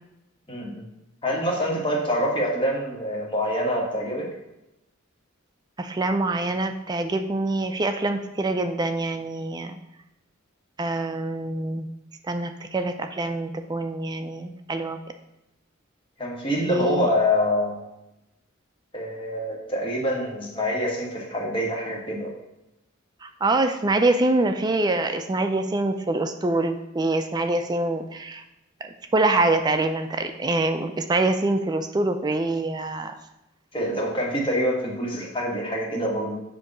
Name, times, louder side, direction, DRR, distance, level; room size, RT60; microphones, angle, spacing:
voice 1, 0.5-0.9 1.2-4.3 16.2-17.8 18.9-22.3 33.7-36.4, equal, 25° left, -3 dB, 1.5 m, -26 dB
voice 2, 5.8-9.8 10.8-11.9 12.3-15.0 16.7-17.1 23.2-28.4 28.8-33.1, right 2 dB, 20° right, 7 dB, 0.4 m, -25 dB
7.6 x 2.8 x 6.0 m, 0.91 s
head